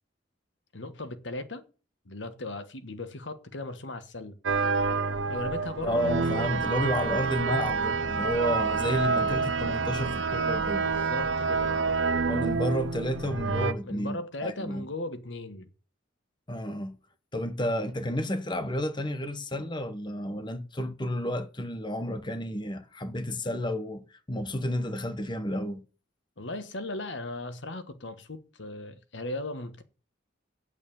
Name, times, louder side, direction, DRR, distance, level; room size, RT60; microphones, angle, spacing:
voice 1, 0.7-1.6 2.0-4.3 5.3-6.1 10.8-12.0 13.8-15.7 26.4-29.8, left 2 dB, 80° left, 1.4 m, -37 dB
sound 1, 4.4-13.7, right 4 dB, 85° right, 0.9 m, -28 dB
voice 2, 5.8-10.9 12.3-14.9 16.5-17.0 17.3-25.8, equal, 25° left, 1.1 m, -31 dB
9.0 x 8.4 x 7.1 m
head